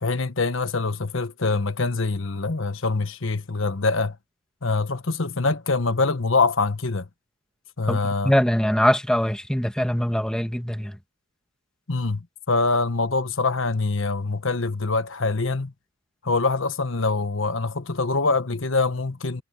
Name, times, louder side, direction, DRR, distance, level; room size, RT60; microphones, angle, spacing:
voice 1, 0.0-4.2 4.6-7.1 7.8-8.3 11.9-15.7 16.2-19.4, left 3 dB, 70° left, 1.2 m, -24 dB
voice 2, 8.2-11.0, equal, 5° left, 1.7 m, -22 dB
head